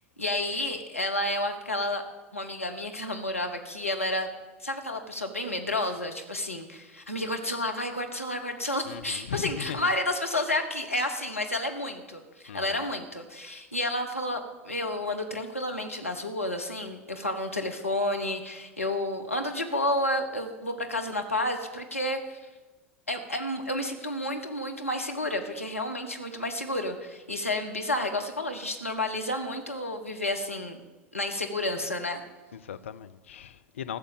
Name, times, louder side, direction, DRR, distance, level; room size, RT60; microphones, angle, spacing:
voice 1, 0.2-2.0 2.3-4.3 4.6-22.4 23.1-30.8 31.1-32.2, left 1 dB, 85° left, 1.4 m, -31 dB
voice 2, 8.9-9.8 12.5-12.8 32.5-34.0, left 9 dB, 70° left, 0.6 m, -38 dB
14.0 x 6.7 x 8.9 m
figure-of-eight pair, 80°, 7 cm